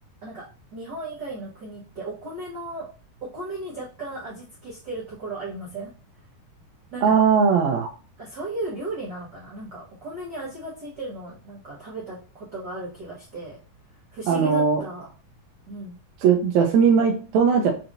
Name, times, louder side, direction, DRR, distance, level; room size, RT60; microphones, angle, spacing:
voice 1, 0.7-2.9 3.2-5.9 6.9-7.2 8.2-13.6 14.1-15.1 15.7-15.9, right 2 dB, 55° right, -7 dB, 1.2 m, -35 dB
voice 2, 7.0-7.9 14.3-14.8 16.2-17.7, right 6 dB, 75° right, 1 dB, 1.8 m, -19 dB
6.7 x 2.8 x 2.6 m, 0.36 s
omnidirectional pair, 3.7 m